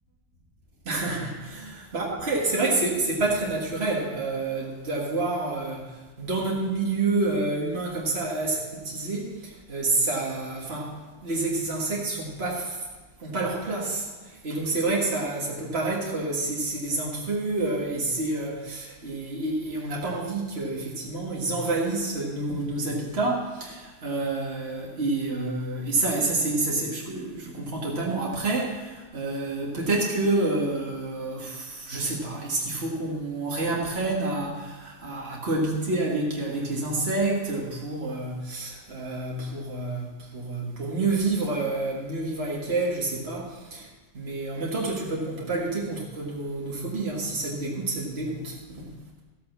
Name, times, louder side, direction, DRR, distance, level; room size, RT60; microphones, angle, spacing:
voice 1, 0.9-11.0 11.2-12.9 13.2-43.9 44.1-48.9, right 2 dB, 60° right, -4 dB, 2.1 m, -28 dB
14.5 x 8.6 x 6.1 m, 1.3 s
omnidirectional pair, 1.2 m